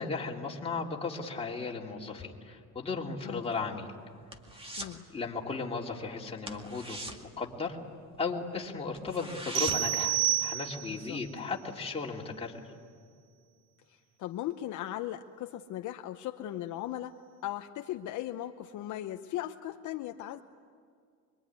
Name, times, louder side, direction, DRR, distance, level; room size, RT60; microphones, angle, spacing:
voice 1, 0.0-3.9 5.1-7.1 7.4-7.8 8.2-12.6, left 4 dB, 15° left, -2 dB, 3.0 m, -35 dB
sound 1, 3.4-5.0 5.3-5.6 5.9-6.0 6.4-8.3 8.6-8.7 8.9-10.1 10.4-10.5, right 1 dB, 15° right, 2.1 m, -41 dB
sound 2, 9.6-11.1, right 14 dB, 60° right, 0.7 m, -29 dB
voice 2, 10.9-11.2 13.9-17.2 17.4-20.4, left 13 dB, 55° left, 6 dB, 0.9 m, -38 dB
25.5 x 23.5 x 9.6 m, 2.1 s
cardioid pair, 135°, 35 cm